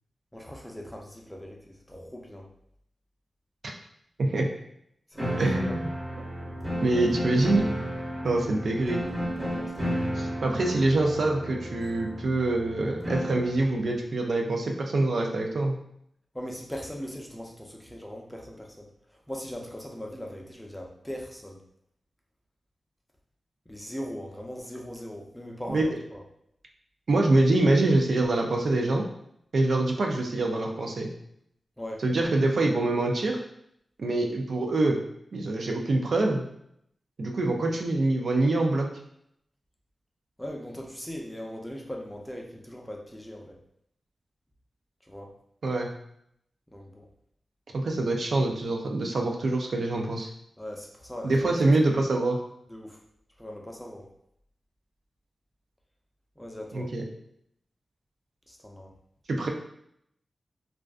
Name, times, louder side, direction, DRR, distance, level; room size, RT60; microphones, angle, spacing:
voice 1, 0.3-2.5 5.1-5.9 9.3-10.1 16.3-18.9 19.1-21.6 23.7-26.2 31.8-32.0 40.4-43.6 45.1-45.3 46.7-47.1 50.6-51.3 52.7-53.0 53.4-54.1 56.4-56.9 58.5-58.9, equal, 10° left, 0 dB, 0.5 m, -40 dB
sound 1, 5.2-13.6, equal, 20° right, 1.0 m, -32 dB
voice 2, 5.4-5.9 6.8-7.7 8.2-9.0 10.1-15.8 25.7-25.9 27.1-29.0 29.5-31.1 32.0-33.4 34.0-35.0 35.3-36.4 37.2-38.9 45.6-45.9 47.7-50.3 51.2-52.4 56.7-57.0 59.3-59.5, right 2 dB, 75° right, 1 dB, 0.4 m, -25 dB
2.4 x 2.2 x 2.3 m, 0.72 s
cardioid pair, 50°, 0 cm